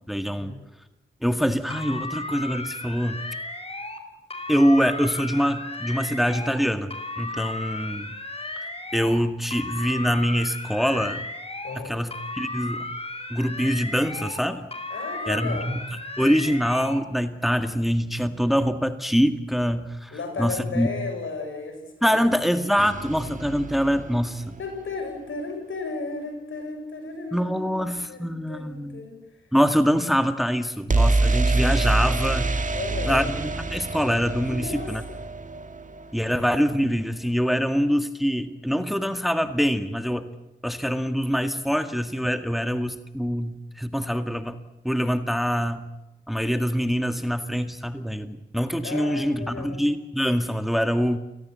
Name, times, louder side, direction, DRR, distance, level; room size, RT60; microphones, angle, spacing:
voice 1, 0.1-0.5 1.2-3.2 4.5-6.9 7.2-8.1 8.6-11.2 11.8-12.9 13.3-14.7 15.3-15.8 16.2-20.1 20.4-20.9 22.0-24.6 27.3-29.0 29.5-32.7 33.1-35.0 36.1-40.3 40.6-44.6 44.8-45.9 46.3-51.2, equal, ahead, 8 dB, 2.0 m, -24 dB
sound 1, 1.7-4.0 4.3-6.6 6.9-9.2 9.5-11.8 12.1-14.4 14.7-17.0, left 2 dB, 30° left, 5.0 m, -35 dB
voice 2, 11.6-12.0 14.9-15.7 20.1-22.3 24.6-29.2 32.7-33.3 34.5-35.2 48.8-49.9, left 3 dB, 75° left, 5 dB, 7.2 m, -34 dB
sound 2, 22.8-24.8 30.9-36.7, right 2 dB, 40° right, 2.1 m, -26 dB
29.5 x 18.5 x 8.4 m, 0.94 s
cardioid pair, 45°, 21 cm